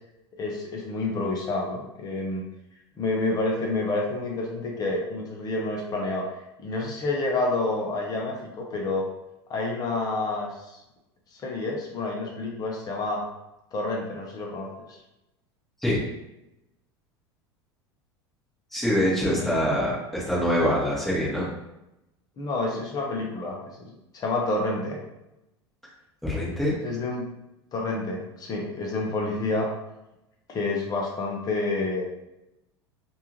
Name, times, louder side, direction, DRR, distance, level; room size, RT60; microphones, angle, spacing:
voice 1, 0.4-2.4 3.0-6.3 6.6-9.1 9.5-10.8 11.4-13.2 13.7-14.7 19.2-19.5 22.4-25.0 26.8-27.2 27.7-29.7 30.5-32.0, left 2 dB, 25° left, -1 dB, 0.8 m, -29 dB
voice 2, 18.7-21.5 26.2-26.8, equal, ahead, -6 dB, 1.3 m, -24 dB
3.4 x 2.6 x 3.0 m, 0.90 s
figure-of-eight pair, 80°, 14 cm